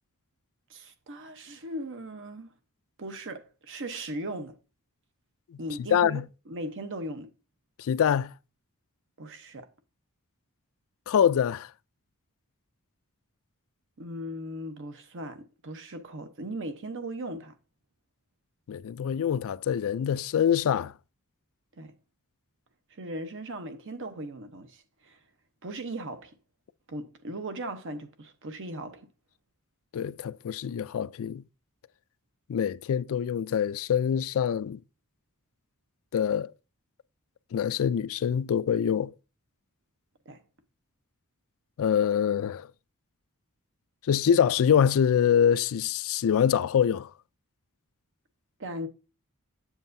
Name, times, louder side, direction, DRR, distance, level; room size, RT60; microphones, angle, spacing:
voice 1, 0.7-2.5 3.0-4.6 5.6-6.2 6.5-7.3 9.2-9.7 14.0-17.5 21.7-21.9 22.9-25.2 25.6-26.4 26.9-29.1 40.3-40.4 48.6-48.9, right 1 dB, 60° right, 0.9 m, -38 dB
voice 2, 5.9-6.3 7.8-8.3 11.1-11.7 18.7-20.9 29.9-31.4 32.5-34.8 36.1-36.5 37.5-39.1 41.8-42.7 44.1-47.1, left 8 dB, 65° left, 0.3 m, -25 dB
7.7 x 7.3 x 2.6 m
head